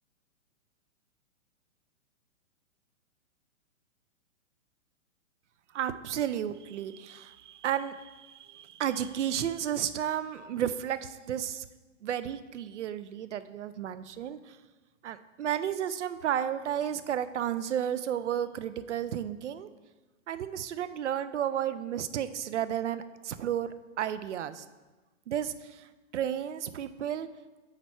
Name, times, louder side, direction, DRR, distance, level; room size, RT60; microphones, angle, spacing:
voice 1, 5.7-11.6 12.0-14.6 15.0-19.7 20.3-24.6 25.3-27.3, right 10 dB, 60° right, 13 dB, 0.5 m, -33 dB
8.8 x 3.1 x 4.6 m, 1.2 s
figure-of-eight pair, 120°, 39 cm